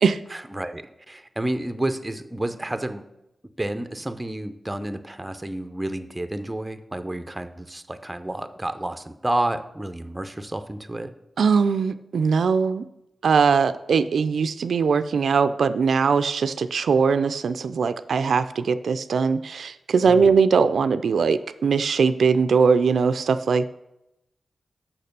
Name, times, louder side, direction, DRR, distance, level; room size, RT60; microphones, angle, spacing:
voice 1, 0.3-3.1 3.6-11.1 20.0-20.3, right 1 dB, 15° right, 10 dB, 0.6 m, -30 dB
voice 2, 11.4-12.8 13.2-23.7, right 5 dB, 90° right, 12 dB, 0.3 m, -21 dB
6.6 x 5.8 x 6.6 m, 0.88 s
wide cardioid pair, 90°, 0 cm